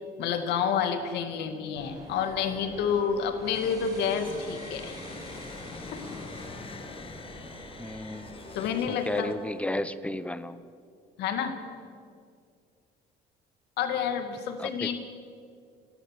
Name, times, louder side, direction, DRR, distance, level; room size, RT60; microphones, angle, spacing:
voice 1, 0.2-5.0 5.9-6.0 8.5-9.3 11.2-11.6 13.8-15.0, left 7 dB, 85° left, 7 dB, 2.4 m, -29 dB
sound 1, 1.7-8.7, right 1 dB, 20° right, 6.3 m, -44 dB
sound 2, 4.0-9.7, left 5 dB, 35° left, 1.4 m, -45 dB
voice 2, 7.8-8.3 8.9-10.6 14.6-14.9, left 1 dB, 5° left, 14 dB, 0.9 m, -33 dB
30.0 x 12.0 x 7.7 m, 2.3 s
cardioid pair, 110°, 17 cm